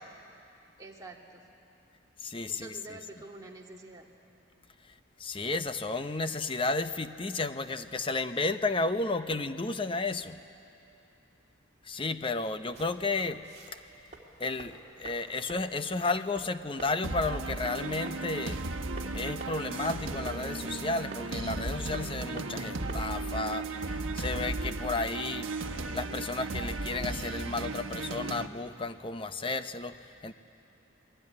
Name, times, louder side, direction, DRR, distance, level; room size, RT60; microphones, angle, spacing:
voice 1, 0.8-1.4 2.5-4.1, right 2 dB, 15° right, -1 dB, 2.3 m, -47 dB
voice 2, 2.2-2.7 5.2-10.4 11.8-13.8 14.4-18.6 19.1-25.5 25.9-30.3, left 3 dB, 25° left, 10 dB, 0.7 m, -33 dB
sound 1, 12.7-24.2, right 2 dB, 35° right, 2.9 m, -50 dB
sound 2, 17.0-28.5, right 3 dB, 75° right, 1.2 m, -35 dB
28.0 x 21.5 x 9.8 m, 2.8 s
head